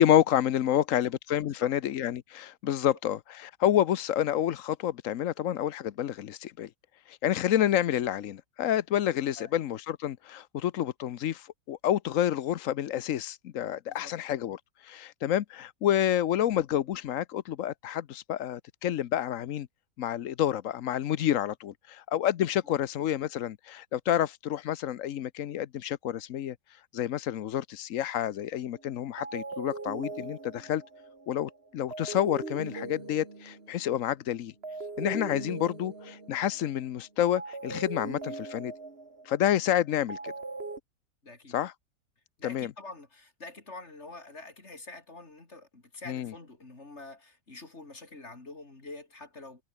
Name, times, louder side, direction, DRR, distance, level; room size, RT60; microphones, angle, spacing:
voice 1, 0.0-6.7 7.1-19.7 20.0-30.8 31.3-34.5 35.0-38.7 39.2-40.3 41.5-41.7 42.4-42.7 46.1-46.3, left 11 dB, 60° left, 0.9 m, -29 dB
sound 1, 28.7-28.9 29.2-34.1 34.6-36.8 37.4-40.8, right 3 dB, 35° right, 2.9 m, -40 dB
voice 2, 41.2-41.6 42.4-49.6, left 2 dB, 35° left, 4.1 m, -46 dB
omnidirectional pair, 1.9 m